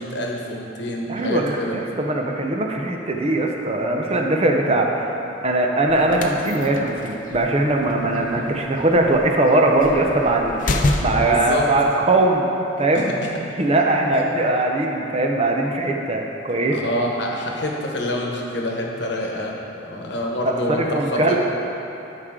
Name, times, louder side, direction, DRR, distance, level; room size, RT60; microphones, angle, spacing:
voice 1, 0.0-1.8 4.1-4.2 11.0-11.7 14.1-14.2 16.7-19.5 19.8-21.3, left 1 dB, 60° left, -1 dB, 1.1 m, -27 dB
voice 2, 1.1-5.0 5.4-12.5 12.8-13.1 13.6-16.8 20.7-21.3, right 2 dB, 30° right, 1 dB, 0.6 m, -20 dB
sound 1, 5.9-11.5, left 2 dB, 45° left, 0.5 m, -28 dB
12.5 x 5.0 x 3.7 m, 2.9 s
head